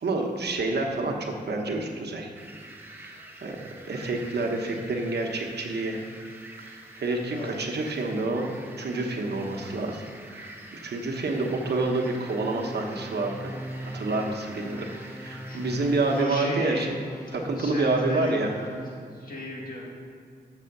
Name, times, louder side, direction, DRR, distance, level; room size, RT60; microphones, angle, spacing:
voice 1, 0.0-2.3 3.0-3.2 3.4-6.0 6.7-10.0 10.3-13.5 13.8-14.9 15.2-16.9 17.3-18.5, right 2 dB, 75° right, 2 dB, 1.1 m, -28 dB
sound 1, 2.3-16.2, right 1 dB, 15° right, 1.2 m, -47 dB
voice 2, 7.3-7.7 15.4-16.9 17.2-18.9 19.1-19.8, left 1 dB, 55° left, -3 dB, 2.2 m, -36 dB
sound 2, 11.5-19.0, right 1 dB, 15° left, 0.8 m, -40 dB
6.9 x 6.6 x 6.5 m, 2.2 s
wide cardioid pair, 90°, 17 cm